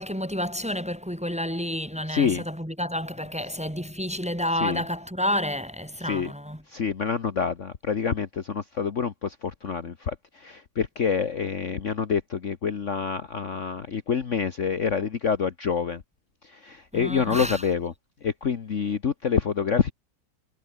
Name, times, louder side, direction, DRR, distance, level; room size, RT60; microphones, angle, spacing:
voice 1, 0.0-6.6 16.9-17.6, equal, 5° right, 2.6 m, -30 dB
voice 2, 2.1-2.4 4.6-4.8 6.0-6.3 6.7-16.0 16.4-17.9 18.2-19.9, left 6 dB, 45° left, 1.5 m, -27 dB
omnidirectional pair, 1.9 m